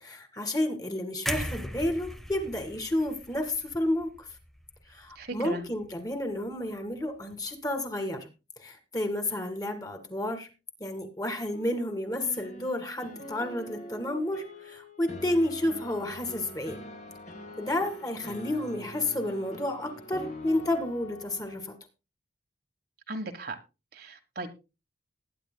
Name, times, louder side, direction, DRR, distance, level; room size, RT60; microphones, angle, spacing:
voice 1, 0.0-4.1 4.9-8.3 8.6-10.5 10.8-16.8 17.6-21.8, left 1 dB, 20° left, 2.0 m, -31 dB
sound 1, 1.3-5.3 5.6-5.8, equal, ahead, 0.6 m, -38 dB
voice 2, 5.1-5.6 23.1-23.6 23.9-24.5, right 2 dB, 50° right, 1.3 m, -37 dB
sound 2, 11.5-21.6, left 1 dB, 40° left, 1.5 m, -44 dB
20.0 x 10.0 x 2.2 m
head